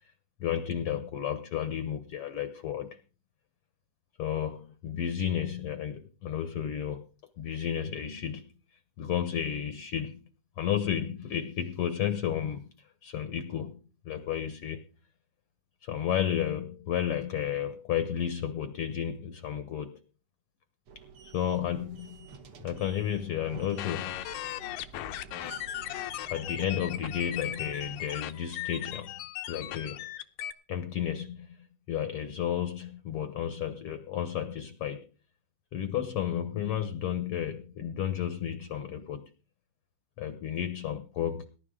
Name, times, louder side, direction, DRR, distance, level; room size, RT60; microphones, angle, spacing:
voice 1, 0.4-3.0 4.2-7.1 7.4-8.5 9.0-10.2 10.6-12.7 13.0-14.8 15.8-20.0 21.3-22.2 22.6-24.3 26.3-29.1 29.5-30.0 30.7-31.6 31.9-35.1 35.7-39.3 40.2-41.5, left 9 dB, 65° left, 1.5 m, -32 dB
sound 1, 20.9-28.2, right 5 dB, 60° right, 1.6 m, -50 dB
sound 2, 23.8-30.5, left 13 dB, 85° left, 2.5 m, -37 dB
19.5 x 10.5 x 3.7 m
omnidirectional pair, 3.8 m